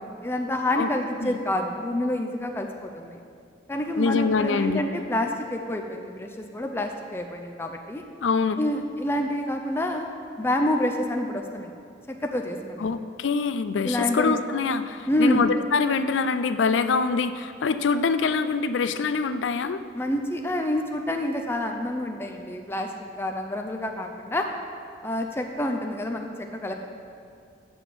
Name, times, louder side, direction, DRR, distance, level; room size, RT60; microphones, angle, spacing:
voice 1, 0.2-3.2 3.7-8.0 8.6-10.1 10.4-11.7 12.1-12.9 13.8-14.4 15.1-15.4 19.9-24.5 25.0-26.7, left 1 dB, 15° left, 3 dB, 0.5 m, -28 dB
voice 2, 4.0-4.8 8.2-8.6 12.8-19.8, left 4 dB, 85° left, 11 dB, 0.4 m, -24 dB
7.7 x 7.1 x 6.0 m, 2.4 s
head